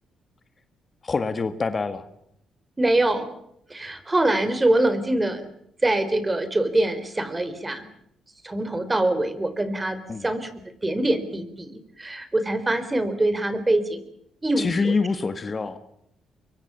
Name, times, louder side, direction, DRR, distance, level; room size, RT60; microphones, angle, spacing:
voice 1, 1.0-2.1 10.1-10.3 14.6-15.8, left 4 dB, 35° left, 10 dB, 1.8 m, -25 dB
voice 2, 2.8-3.3 3.7-5.5 5.8-7.9 8.4-10.5 10.8-14.0 14.4-14.9, right 1 dB, 20° right, 12 dB, 4.0 m, -24 dB
24.0 x 24.0 x 7.0 m, 0.75 s
cardioid pair, 90°, 0 cm